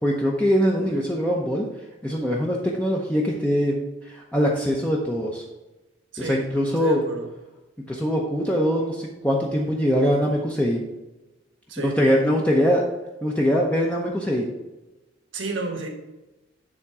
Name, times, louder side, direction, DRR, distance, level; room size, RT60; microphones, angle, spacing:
voice 1, 0.0-1.7 2.0-3.7 4.0-5.4 6.2-7.0 7.9-10.8 11.8-12.8 13.2-14.5, equal, 5° left, -3 dB, 0.7 m, -22 dB
voice 2, 6.1-6.4 6.8-7.3 11.7-12.0 15.3-15.9, right 2 dB, 70° right, 4 dB, 1.2 m, -31 dB
9.9 x 3.6 x 4.8 m, 1.0 s
head